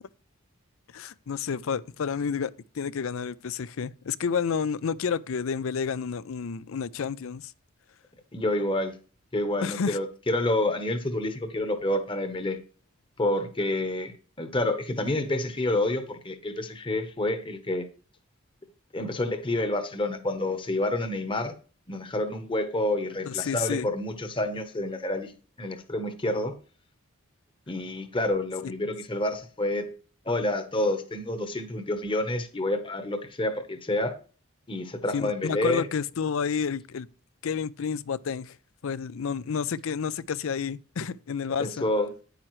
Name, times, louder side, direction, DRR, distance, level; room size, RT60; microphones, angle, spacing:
voice 1, 0.9-7.5 9.6-10.0 23.3-23.9 28.6-28.7 35.1-37.1 37.4-38.6 38.8-41.8, left 6 dB, 65° left, 0.4 m, -30 dB
voice 2, 8.3-8.9 9.3-12.6 13.2-17.9 18.9-21.5 21.9-25.3 25.6-26.5 27.7-29.9 30.2-34.1 34.7-35.8 41.6-42.1, left 1 dB, 25° left, 1.0 m, -28 dB
9.9 x 9.0 x 3.1 m
head